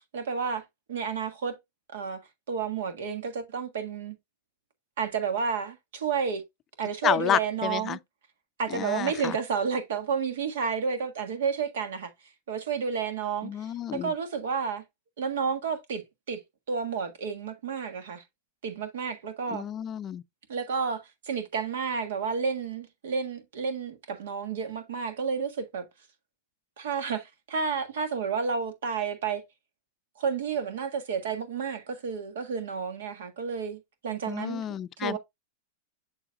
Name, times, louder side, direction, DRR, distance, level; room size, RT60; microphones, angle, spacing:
voice 1, 0.1-0.6 0.9-1.6 1.9-2.2 2.5-4.2 5.0-6.4 6.8-8.0 8.6-12.1 12.5-14.8 15.2-16.4 16.7-18.2 18.6-19.6 20.5-25.9 26.8-29.4 30.2-34.6 35.0-35.2, right 6 dB, 75° right, 1.6 m, -31 dB
voice 2, 7.0-8.0 8.7-9.4 13.4-14.1 19.5-20.2 34.3-35.2, left 10 dB, 30° left, 0.4 m, -30 dB
6.9 x 6.9 x 2.3 m
hypercardioid pair, 110°, 0 cm